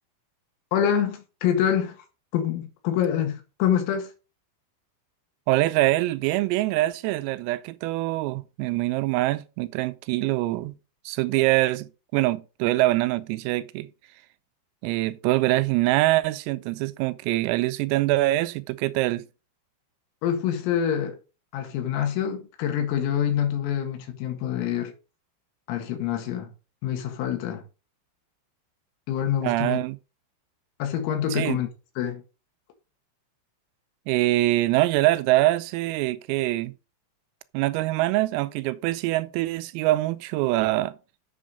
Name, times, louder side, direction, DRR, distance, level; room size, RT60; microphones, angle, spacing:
voice 1, 0.7-2.0 2.3-4.1 20.2-21.2 21.5-24.9 25.7-26.5 26.8-27.6 29.1-29.8 30.8-31.7 32.0-32.2, left 9 dB, 85° left, 4.5 m, -26 dB
voice 2, 5.5-10.8 11.1-13.9 14.8-19.2 29.4-30.0 31.3-31.6 34.1-36.7 37.5-41.0, right 17 dB, 90° right, 3.3 m, -24 dB
8.5 x 7.2 x 5.0 m
omnidirectional pair, 5.9 m